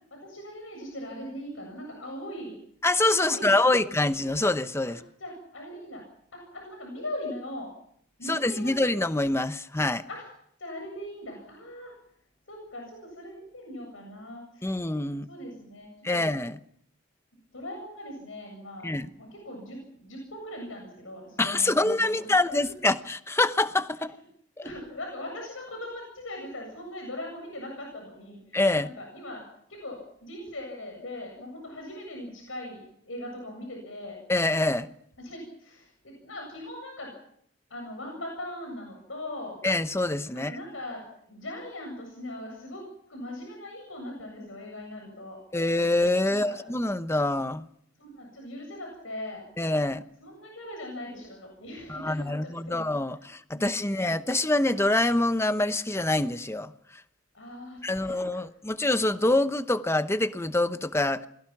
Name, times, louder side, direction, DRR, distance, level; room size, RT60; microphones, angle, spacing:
voice 1, 0.2-2.6 3.2-3.8 4.9-6.0 6.3-7.7 8.2-9.0 10.1-10.3 10.6-11.9 12.5-14.9 15.3-16.3 17.5-22.7 23.9-24.1 24.6-29.4 29.7-34.2 35.2-37.2 37.7-39.6 40.3-45.4 46.3-46.6 48.0-49.4 50.2-52.9 53.2-54.1 57.3-58.2, left 1 dB, 85° left, 7.7 m, -40 dB
voice 2, 2.8-5.0 8.3-10.0 14.6-15.3 16.0-16.6 18.8-19.1 21.4-24.1 28.5-28.9 34.3-34.9 39.6-40.6 45.5-47.7 49.6-50.0 51.9-56.7 57.8-61.3, left 2 dB, 15° left, 0.9 m, -25 dB
28.5 x 22.0 x 6.0 m
head